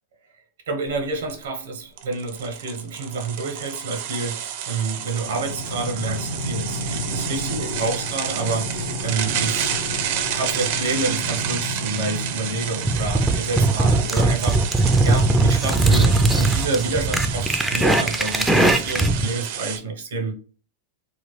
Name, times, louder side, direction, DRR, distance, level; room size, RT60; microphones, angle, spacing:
voice 1, 0.7-9.7 10.3-20.3, right 3 dB, 90° right, 4 dB, 1.0 m, -28 dB
sound 1, 0.9-1.0 1.3-1.4 2.0-19.8, right 9 dB, 60° right, 0.5 m, -30 dB
sound 2, 5.3-13.3, left 1 dB, 90° left, 0.7 m, -32 dB
sound 3, 12.8-19.3, right 2 dB, 5° right, 0.4 m, -19 dB
3.1 x 2.3 x 3.1 m, 0.39 s
supercardioid pair, 140°, 0 cm